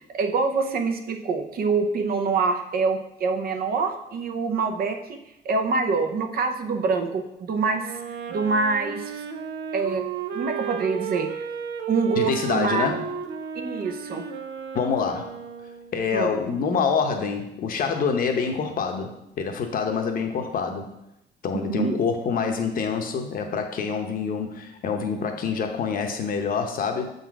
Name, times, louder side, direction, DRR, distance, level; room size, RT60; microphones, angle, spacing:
voice 1, 0.1-5.2 5.4-8.0 8.3-9.1 9.7-10.0 10.3-11.3 11.9-12.9 13.5-14.2 16.1-16.3 21.5-21.9, right 4 dB, 55° right, 6 dB, 0.7 m, -25 dB
Wind instrument woodwind instrument, 7.8-16.1, right 7 dB, 90° right, 0.6 m, -33 dB
voice 2, 12.2-13.0 14.7-15.3 15.9-20.9 21.4-27.1, left 5 dB, 50° left, 4 dB, 0.8 m, -26 dB
6.9 x 4.1 x 4.7 m, 0.84 s
cardioid pair, 160°, 18 cm